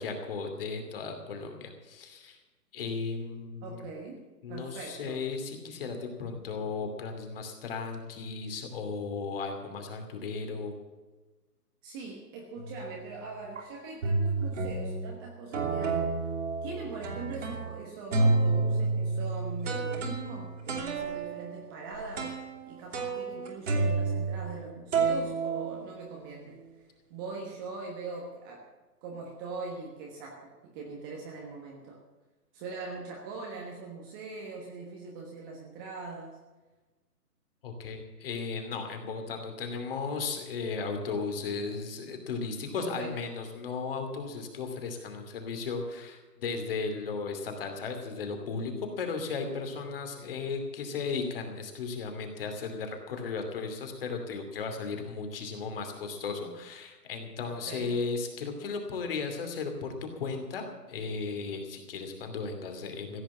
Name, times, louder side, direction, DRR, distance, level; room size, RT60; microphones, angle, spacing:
voice 1, 0.0-2.4 2.7-3.8 4.4-10.7 37.6-63.2, left 4 dB, 35° left, 5 dB, 2.7 m, -35 dB
voice 2, 3.6-4.2 4.5-5.2 11.8-16.1 16.6-26.6 27.1-28.7 29.0-32.0 32.5-36.4 42.8-43.2 57.5-58.0, right 4 dB, 15° right, 0 dB, 1.3 m, -41 dB
sound 1, 12.6-12.9 13.6-13.7 14.0-15.1 15.5-17.8 18.1-24.6 24.9-26.3, right 3 dB, 50° right, 3.1 m, -30 dB
15.5 x 8.7 x 8.5 m, 1.2 s
hypercardioid pair, 155°, 48 cm